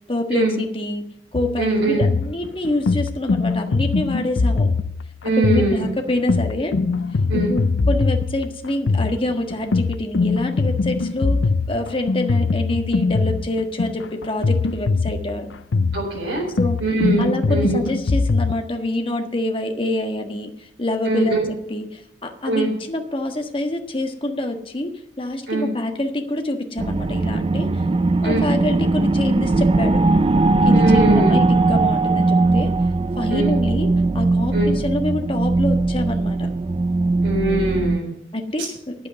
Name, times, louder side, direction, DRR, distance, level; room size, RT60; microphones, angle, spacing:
voice 1, 0.1-1.0 1.3-4.7 5.4-6.8 7.3-7.6 7.9-11.4 11.7-15.5 16.5-16.7 17.2-21.4 21.7-24.9 25.2-27.8 28.2-30.0 30.6-32.7 33.2-33.9 34.1-36.5 38.3-38.9, left 1 dB, 30° left, 4 dB, 1.4 m, -26 dB
sound 1, 1.3-18.6, left 4 dB, 75° left, 0.5 m, -22 dB
voice 2, 1.6-2.0 5.2-5.9 7.3-7.5 15.9-16.4 16.8-17.8 21.0-21.4 22.4-22.7 25.5-25.7 28.2-28.4 30.7-31.4 33.3-33.5 34.5-34.7 37.2-38.1 38.6-38.7, right 2 dB, 70° right, -5 dB, 4.1 m, -22 dB
sound 2, 26.8-38.0, right 2 dB, 30° right, 0.4 m, -19 dB
10.0 x 8.5 x 7.6 m, 0.74 s
head